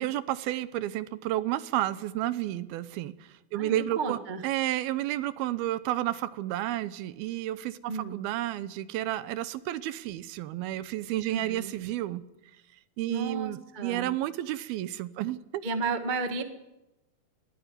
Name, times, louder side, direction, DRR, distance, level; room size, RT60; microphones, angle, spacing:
voice 1, 0.0-3.1 3.5-12.2 13.0-15.4, right 14 dB, 85° right, 2.7 m, -31 dB
voice 2, 3.5-4.4 7.9-8.2 11.3-11.7 13.1-14.1 15.6-16.4, right 4 dB, 60° right, 0.5 m, -33 dB
20.5 x 14.0 x 9.5 m
omnidirectional pair, 4.2 m